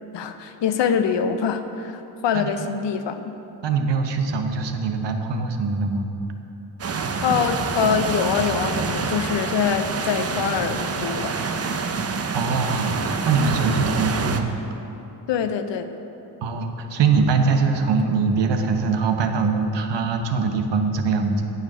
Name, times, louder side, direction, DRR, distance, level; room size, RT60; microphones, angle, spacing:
voice 1, 0.1-3.3 7.2-11.4 15.3-15.9, left 7 dB, 80° left, 9 dB, 0.7 m, -24 dB
voice 2, 3.6-6.1 12.3-14.5 16.4-21.5, right 4 dB, 75° right, 5 dB, 1.0 m, -22 dB
sound 1, 6.8-14.4, right 4 dB, 35° right, 0.6 m, -26 dB
9.3 x 6.5 x 6.1 m, 3.0 s
cardioid pair, 85°, 43 cm